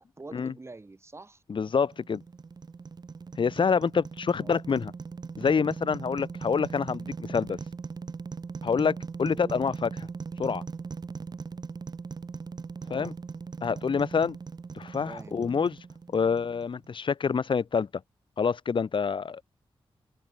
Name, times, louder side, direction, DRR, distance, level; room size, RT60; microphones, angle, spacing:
voice 1, 0.0-1.4 4.4-4.6 9.3-9.6 12.8-13.1 15.0-15.4, right 3 dB, 25° right, 4.3 m, -46 dB
voice 2, 1.5-2.2 3.4-4.9 5.4-7.6 8.6-9.9 10.4-10.6 12.9-13.1 13.6-14.4 14.7-15.8 16.1-17.9 18.4-19.4, left 6 dB, 55° left, 1.3 m, -27 dB
sound 1, 1.7-16.9, right 5 dB, 45° right, 1.1 m, -40 dB
open air
wide cardioid pair, 130°, 10 cm